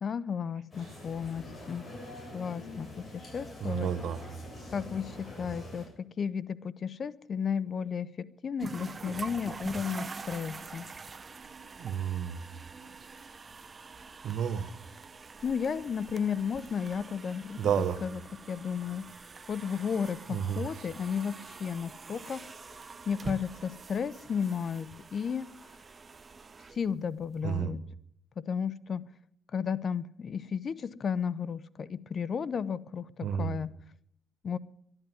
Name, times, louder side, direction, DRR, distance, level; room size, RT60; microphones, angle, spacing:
voice 1, 0.0-1.9 2.3-3.9 4.7-10.8 15.4-17.7 18.0-18.2 18.5-19.0 19.5-22.4 23.1-25.5 26.7-27.8 28.4-29.1 29.5-33.7 34.4-34.6, left 7 dB, 50° left, 0.7 m, -33 dB
sound 1, 0.7-5.9, left 1 dB, 30° left, 7.2 m, -45 dB
voice 2, 3.6-4.3 11.8-12.4 14.2-14.8 17.6-18.0 20.3-20.7 27.4-27.7 33.2-33.6, right 8 dB, 70° right, 1.2 m, -31 dB
sound 2, 8.6-27.5, right 4 dB, 35° right, 0.7 m, -45 dB
12.5 x 11.0 x 9.4 m
cardioid pair, 90°, 0 cm